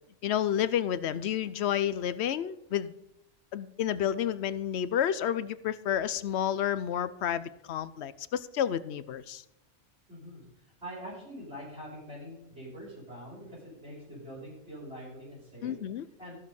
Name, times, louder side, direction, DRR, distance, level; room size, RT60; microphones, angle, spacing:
voice 1, 0.2-2.9 3.5-9.4 15.6-16.0, left 10 dB, 70° left, 15 dB, 0.8 m, -30 dB
voice 2, 10.1-10.4 10.8-15.7 16.2-16.4, equal, 65° right, -8 dB, 5.7 m, -44 dB
14.5 x 6.3 x 5.4 m, 0.85 s
omnidirectional pair, 1.2 m